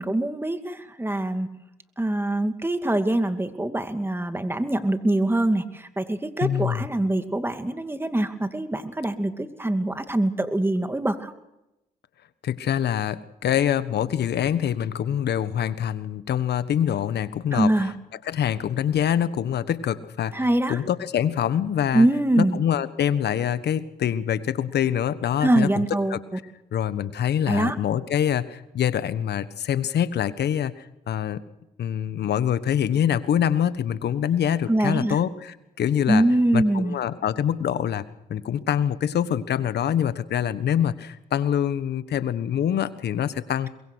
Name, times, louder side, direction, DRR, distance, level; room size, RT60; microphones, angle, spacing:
voice 1, 0.0-1.5 2.0-11.3 17.5-17.9 20.3-20.8 21.9-22.6 25.4-26.2 27.5-27.8 34.7-35.2 36.1-37.0, right 1 dB, 15° right, 8 dB, 2.5 m, -23 dB
voice 2, 6.4-6.9 12.4-17.8 18.2-22.1 22.4-25.8 26.1-26.2 26.7-31.4 31.8-36.2 36.5-38.0 38.3-43.7, left 9 dB, 70° left, 14 dB, 1.4 m, -25 dB
23.5 x 22.0 x 6.4 m, 0.89 s
supercardioid pair, 60°, 18 cm